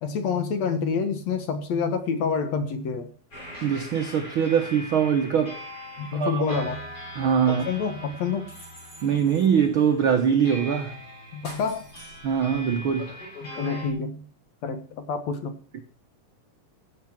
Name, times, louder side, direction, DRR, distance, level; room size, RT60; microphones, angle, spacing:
voice 1, 0.0-3.1 6.0-6.9 7.5-8.5 11.3-11.9 13.4-14.3 14.6-15.6, left 5 dB, 60° left, 2.1 m, -28 dB
sound 1, 3.3-13.9, equal, 25° left, 8.2 m, -41 dB
voice 2, 3.6-5.6 6.1-6.6 7.2-7.6 9.0-11.0 12.2-13.1, right 7 dB, 90° right, 1.1 m, -23 dB
16.0 x 8.1 x 5.9 m
omnidirectional pair, 4.0 m